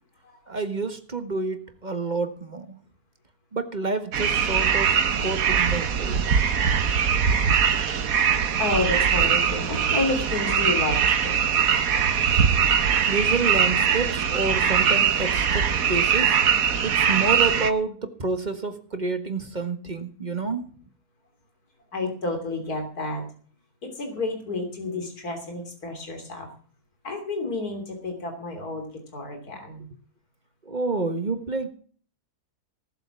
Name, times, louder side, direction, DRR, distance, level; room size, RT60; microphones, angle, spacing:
voice 1, 0.5-2.8 3.5-6.3 13.1-16.4 16.8-20.7 30.6-31.7, right 3 dB, 30° right, 8 dB, 1.5 m, -29 dB
sound 1, 4.1-17.7, right 7 dB, 65° right, 1.5 m, -22 dB
voice 2, 8.6-11.4 21.9-23.2 23.8-26.5 27.0-29.9, left 2 dB, 70° left, 3 dB, 3.8 m, -30 dB
18.0 x 7.9 x 6.2 m, 0.44 s
omnidirectional pair, 1.7 m